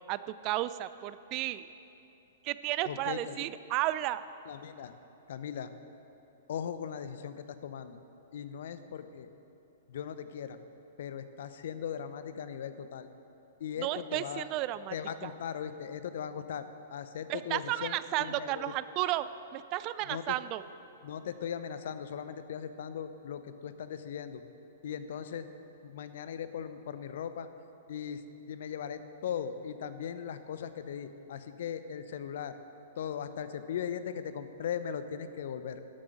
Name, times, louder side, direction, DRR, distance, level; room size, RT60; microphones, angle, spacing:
voice 1, 0.1-1.7 2.4-4.3 13.8-14.9 15.2-15.3 17.3-19.3 19.5-20.6, right 15 dB, 35° right, 14 dB, 0.4 m, -33 dB
voice 2, 2.8-3.4 4.5-4.9 5.3-5.7 6.5-8.0 8.3-9.3 9.9-10.6 11.0-13.1 13.6-14.5 14.9-16.7 16.9-18.7 20.0-20.3 21.0-24.4 24.8-25.5 25.8-27.5 27.9-28.2 28.5-32.6 33.0-35.8, left 8 dB, 60° left, 11 dB, 0.7 m, -38 dB
12.5 x 8.4 x 6.3 m, 2.9 s
figure-of-eight pair, 110°, 0 cm